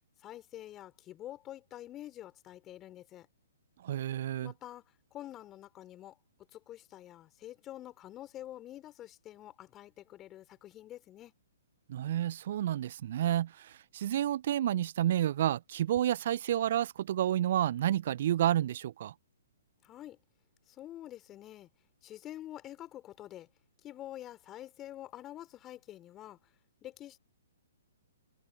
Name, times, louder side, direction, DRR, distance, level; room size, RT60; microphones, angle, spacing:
voice 1, 0.2-3.3 4.4-4.8 5.1-6.2 6.5-11.3 19.8-20.2 20.7-21.7 22.0-23.5 23.8-26.4 26.8-27.2, left 13 dB, 20° left, 4.3 m, -47 dB
voice 2, 3.8-4.5 11.9-19.1, right 11 dB, 50° right, 0.4 m, -30 dB
figure-of-eight pair, 120°, 0 cm